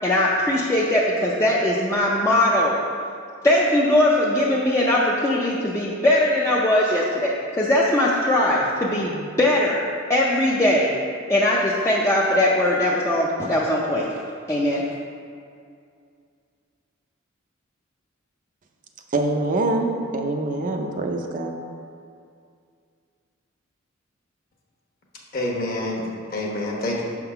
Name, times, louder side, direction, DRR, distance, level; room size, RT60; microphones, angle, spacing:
voice 1, 0.0-2.9 3.4-11.0 11.3-14.1 14.5-14.8, left 1 dB, 15° left, 0.4 m, -20 dB
voice 2, 19.1-21.5, right 2 dB, 40° right, 0.5 m, -24 dB
voice 3, 25.3-27.0, left 1 dB, 45° left, 1.1 m, -27 dB
6.2 x 3.7 x 5.7 m
head